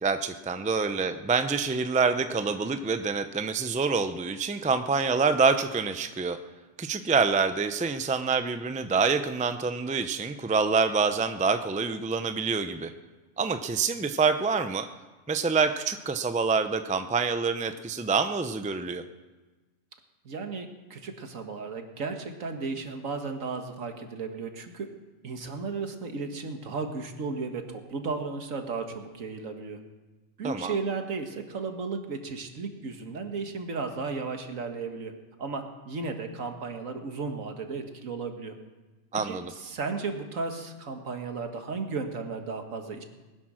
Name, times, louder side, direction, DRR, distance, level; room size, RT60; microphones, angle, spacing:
voice 1, 0.0-6.4 6.8-12.9 13.4-14.9 15.3-19.0 30.4-30.7 39.1-39.5, right 5 dB, 10° right, 9 dB, 0.3 m, -26 dB
voice 2, 20.3-24.9 25.2-29.8 30.4-35.1 35.4-38.5 39.1-43.0, right 4 dB, 85° right, 5 dB, 1.8 m, -34 dB
19.5 x 10.5 x 6.3 m, 1.2 s
omnidirectional pair, 1.3 m